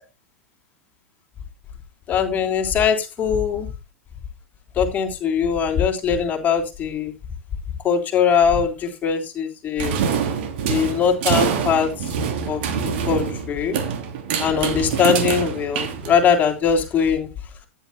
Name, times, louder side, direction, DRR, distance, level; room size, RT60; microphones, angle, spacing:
voice 1, 2.1-3.7 4.8-7.1 7.8-10.0 10.7-11.9 12.5-12.6 13.1-13.8 14.4-17.3, left 7 dB, 25° left, 3.7 m, -21 dB
sound 1, 9.8-16.5, right 7 dB, 50° right, 3.2 m, -25 dB
14.5 x 10.5 x 2.2 m
figure-of-eight pair, 95°, 7 cm